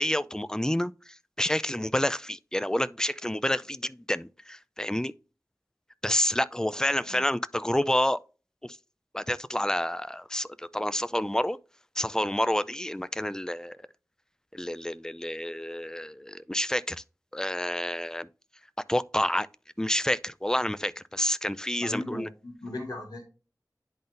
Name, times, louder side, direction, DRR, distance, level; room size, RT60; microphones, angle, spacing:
voice 1, 0.0-5.1 6.0-8.2 8.6-8.8 9.1-11.6 12.0-13.8 14.5-17.0 17.3-18.3 18.9-19.5 19.8-22.3, left 1 dB, 10° left, 0.4 m, -29 dB
voice 2, 21.8-23.2, left 1 dB, 70° left, 2.1 m, -37 dB
10.5 x 3.9 x 2.5 m
wide cardioid pair, 50°, 7 cm